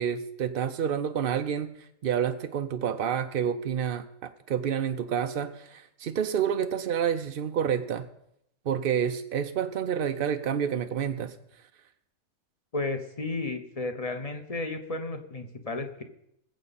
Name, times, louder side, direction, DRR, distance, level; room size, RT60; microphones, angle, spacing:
voice 1, 0.0-8.1 8.7-11.3, right 8 dB, 65° right, 8 dB, 0.5 m, -29 dB
voice 2, 12.7-16.0, left 3 dB, 30° left, 7 dB, 0.9 m, -33 dB
20.5 x 7.8 x 4.1 m, 0.79 s
omnidirectional pair, 1.6 m